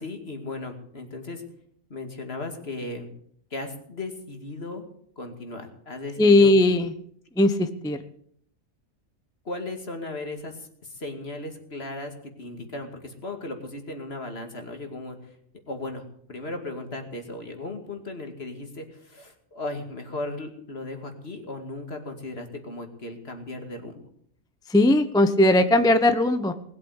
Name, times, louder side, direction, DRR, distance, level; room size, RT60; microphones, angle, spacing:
voice 1, 0.0-1.4 1.9-3.1 3.5-4.8 5.2-6.5 9.4-15.4 15.7-16.0 16.3-24.0, left 2 dB, 45° left, 5 dB, 2.5 m, -36 dB
voice 2, 6.2-6.9 7.4-8.0 24.7-26.5, left 1 dB, 5° left, 8 dB, 0.7 m, -18 dB
19.5 x 8.5 x 8.1 m, 0.66 s
omnidirectional pair, 1.4 m